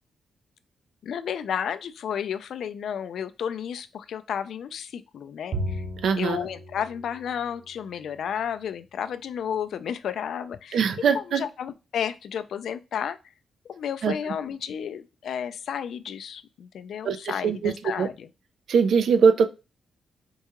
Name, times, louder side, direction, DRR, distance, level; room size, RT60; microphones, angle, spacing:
voice 1, 1.0-5.8 6.2-10.8 11.1-13.2 13.7-18.3, left 8 dB, 75° left, 0.3 m, -32 dB
Bowed string instrument, 5.5-8.1, right 1 dB, 45° right, 0.9 m, -35 dB
voice 2, 6.0-6.5 10.7-11.4 14.0-14.1 17.0-18.1 18.7-19.5, right 6 dB, 75° right, 0.4 m, -22 dB
4.5 x 2.3 x 2.9 m
cardioid pair, 120°, 0 cm